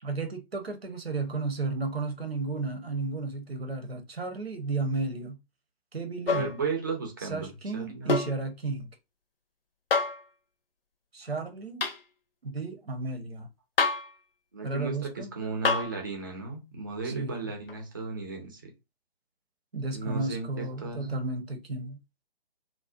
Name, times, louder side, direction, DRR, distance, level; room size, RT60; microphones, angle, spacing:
voice 1, 0.0-5.4 5.9-6.6 7.2-8.9 11.1-11.8 12.4-13.5 14.6-15.3 17.0-17.5 19.7-22.0, right 3 dB, 90° right, 0.7 m, -33 dB
sound 1, 6.3-6.6 8.1-8.4 9.9-10.2 11.8-12.0 13.8-14.1 15.6-16.0 17.7-17.8, left 4 dB, 70° left, 0.6 m, -26 dB
voice 2, 6.3-8.1 14.5-18.7 19.9-21.2, right 4 dB, 20° right, 0.4 m, -35 dB
2.5 x 2.0 x 2.4 m
figure-of-eight pair, 140°, 30 cm